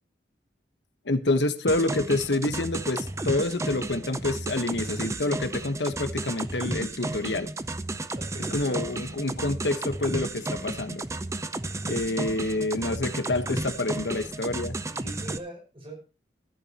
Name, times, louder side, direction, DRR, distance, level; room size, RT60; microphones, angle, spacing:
voice 1, 1.0-7.5 8.5-11.0 11.9-14.7, left 2 dB, 85° left, 1.3 m, -27 dB
sound 1, 1.7-15.4, right 2 dB, 15° right, 0.6 m, -33 dB
voice 2, 8.1-8.8 14.9-15.9, right 2 dB, 30° right, 5.2 m, -42 dB
14.5 x 12.5 x 2.9 m
head